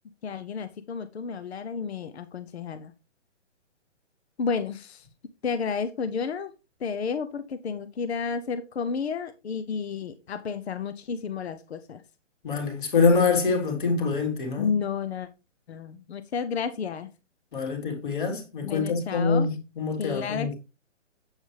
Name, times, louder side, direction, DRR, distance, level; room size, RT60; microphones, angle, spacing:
voice 1, 0.2-2.9 4.4-5.1 5.4-6.5 6.8-12.0 14.6-15.3 15.7-17.1 18.6-19.6 20.0-20.5, left 6 dB, 60° left, 0.8 m, -31 dB
voice 2, 12.4-14.7 17.5-20.5, left 4 dB, 40° left, 3.5 m, -25 dB
9.0 x 8.2 x 3.3 m
hypercardioid pair, 175°, 37 cm